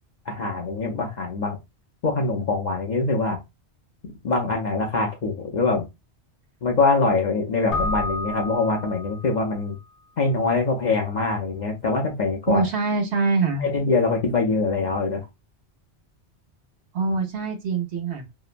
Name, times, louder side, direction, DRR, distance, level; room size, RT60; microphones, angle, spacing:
voice 1, 0.3-1.6 2.0-3.4 4.2-5.9 6.6-9.7 10.2-12.6 13.6-15.3, left 3 dB, 50° left, 1 dB, 0.6 m, -23 dB
Keyboard (musical), 7.7-9.5, left 2 dB, 85° left, 1.0 m, -30 dB
voice 2, 12.5-13.6 16.9-18.2, right 4 dB, 75° right, 2 dB, 1.1 m, -24 dB
2.9 x 2.0 x 2.4 m, 0.22 s
omnidirectional pair, 1.1 m